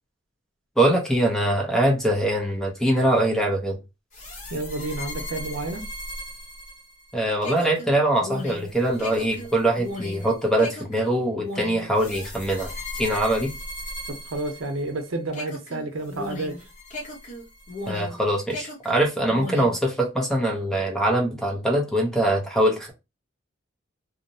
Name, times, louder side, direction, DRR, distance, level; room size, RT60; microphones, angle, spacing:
voice 1, 0.8-3.8 7.1-13.5 17.9-22.9, right 1 dB, 5° left, 0.5 m, -23 dB
sound 1, 4.1-15.0 15.3-18.2 18.5-19.8, left 1 dB, 35° left, 0.8 m, -36 dB
voice 2, 4.5-5.8 14.1-16.6, right 2 dB, 80° right, 0.7 m, -30 dB
2.7 x 2.0 x 2.6 m
head